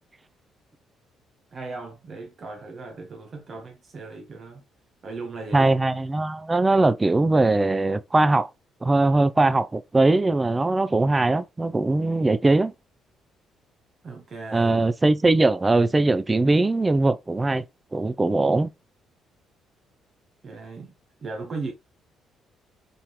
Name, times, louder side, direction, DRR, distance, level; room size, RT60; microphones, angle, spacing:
voice 1, 1.5-4.6 5.0-5.8 14.0-14.7 20.4-20.9 21.2-21.7, right 3 dB, 45° right, 1.1 m, -36 dB
voice 2, 5.5-8.5 8.8-12.7 14.5-17.6 17.9-18.7, right 2 dB, 20° right, 0.5 m, -21 dB
4.3 x 3.5 x 3.1 m
supercardioid pair, 75°, 0 cm